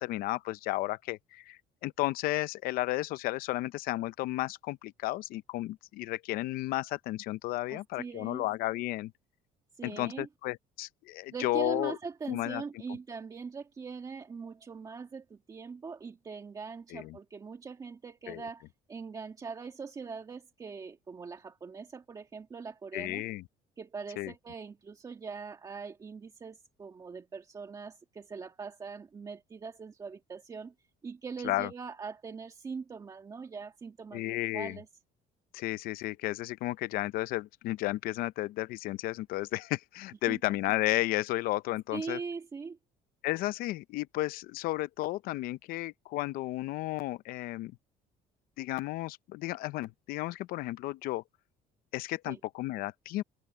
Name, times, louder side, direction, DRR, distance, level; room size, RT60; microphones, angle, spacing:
voice 1, 0.0-9.1 9.8-12.0 12.3-12.6 16.9-17.2 18.3-18.4 22.9-23.4 24.2-24.3 31.4-31.7 34.1-34.8 35.5-42.2 43.2-47.7 48.6-51.2 51.9-53.2, left 17 dB, 70° left, 0.6 m, -33 dB
voice 2, 7.7-8.4 9.8-10.3 11.3-23.2 23.8-30.7 31.0-34.9 40.3-40.4 41.9-42.8 52.3-52.4, right 5 dB, 20° right, 2.0 m, -42 dB
cardioid pair, 155°, 16 cm